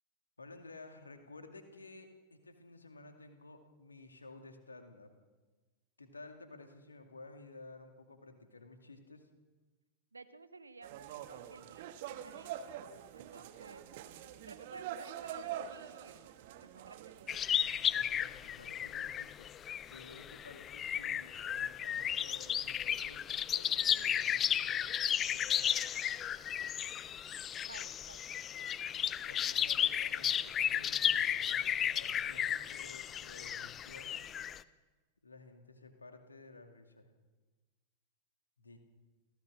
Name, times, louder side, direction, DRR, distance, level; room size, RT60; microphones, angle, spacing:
voice 1, 0.4-5.1 6.0-9.3 17.8-19.5 19.9-24.8 25.3-25.6 28.8-34.3 35.2-37.1 38.6-38.8, left 3 dB, 75° left, 6 dB, 2.5 m, -54 dB
voice 2, 10.1-12.6 13.1-13.8 14.4-16.3 16.7-17.6 27.6-28.3, right 3 dB, 80° right, 13 dB, 1.2 m, -54 dB
sound 1, 10.8-17.4, right 10 dB, 50° right, 1.6 m, -45 dB
sound 2, 17.3-34.6, left 9 dB, 25° left, 0.7 m, -34 dB
28.5 x 16.0 x 6.3 m, 1.3 s
figure-of-eight pair, 90°, 0 cm